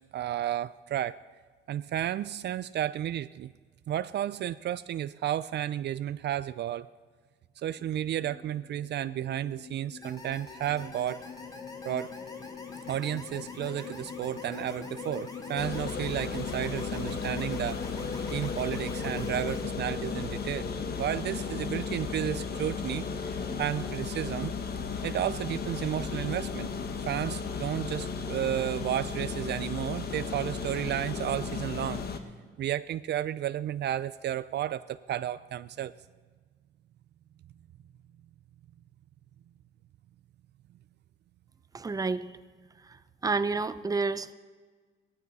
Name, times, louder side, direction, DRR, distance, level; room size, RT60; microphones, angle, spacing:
voice 1, 0.1-1.2 1.7-3.5 3.9-6.9 7.6-11.2 11.8-12.1 12.9-17.8 18.3-20.7 21.0-24.5 25.0-26.7 27.1-32.0 32.6-35.9, right 11 dB, 60° right, 15 dB, 0.4 m, -32 dB
sound 1, 7.8-23.6, left 6 dB, 35° left, 0.6 m, -41 dB
sound 2, 10.0-19.6, left 1 dB, 20° left, 2.0 m, -48 dB
sound 3, 15.6-32.2, left 5 dB, 50° left, 1.4 m, -35 dB
voice 2, 41.7-42.3 43.2-44.3, right 4 dB, 20° right, 13 dB, 0.6 m, -29 dB
17.0 x 13.5 x 4.1 m, 1.5 s
cardioid pair, 90°, 20 cm